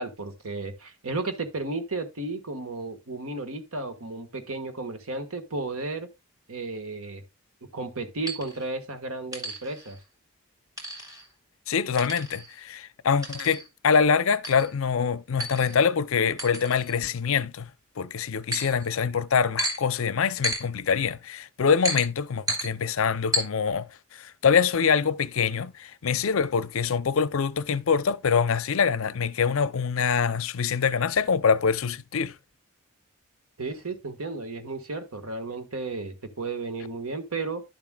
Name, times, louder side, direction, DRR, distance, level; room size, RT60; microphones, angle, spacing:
voice 1, 0.0-6.1 6.5-7.2 7.7-10.0 33.6-37.6, right 3 dB, 80° right, 1.4 m, -33 dB
sound 1, 8.3-8.6 9.3-10.0 10.8-11.3 12.0-12.6 13.2-13.7 14.4-14.7 15.4-15.8 16.4-17.1 18.5-18.9 19.6-19.8 20.4-20.6 21.8-22.1 22.5-22.7 23.3-23.5, right 1 dB, 15° right, 3.1 m, -32 dB
voice 2, 11.7-17.7 18.0-23.9 24.1-32.4, left 6 dB, 65° left, 0.5 m, -24 dB
11.5 x 7.3 x 2.3 m
head